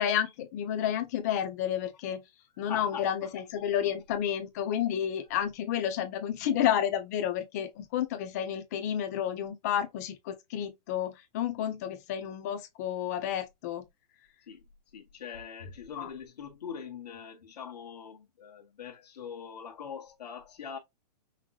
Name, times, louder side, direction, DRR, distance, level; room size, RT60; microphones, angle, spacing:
voice 1, 0.0-2.2 2.6-13.8 16.0-16.1, left 10 dB, 25° left, 0.7 m, -31 dB
voice 2, 2.7-3.3 14.5-14.6 14.9-20.8, left 7 dB, 75° left, 1.7 m, -42 dB
5.7 x 3.1 x 2.4 m
hypercardioid pair, 180°, 21 cm